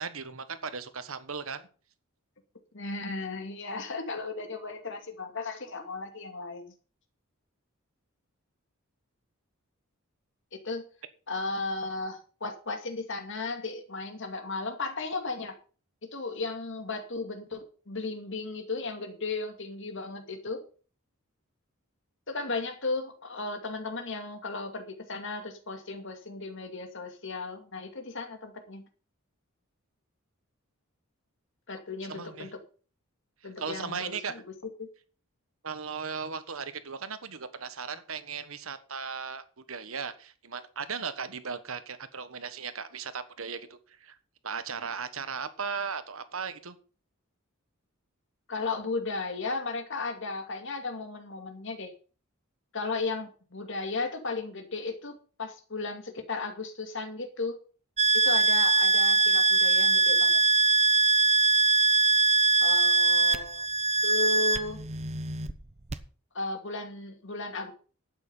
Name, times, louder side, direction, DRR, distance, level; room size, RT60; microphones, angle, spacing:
voice 1, 0.0-1.7 32.1-32.5 33.6-34.3 35.6-44.2 44.4-46.8, right 5 dB, 70° right, 12 dB, 1.3 m, -37 dB
voice 2, 2.7-6.7 10.5-10.9 11.3-15.5 16.1-20.6 22.3-28.8 31.7-32.6 33.4-34.4 34.8-34.9 48.5-51.9 52.7-57.6 58.2-60.4 62.6-63.6 64.0-64.8 66.3-67.7, left 3 dB, 60° left, 5 dB, 2.4 m, -35 dB
sound 1, 58.0-65.5 65.9-66.0, right 3 dB, 30° right, 0.9 m, -22 dB
11.5 x 9.0 x 5.6 m, 0.39 s
head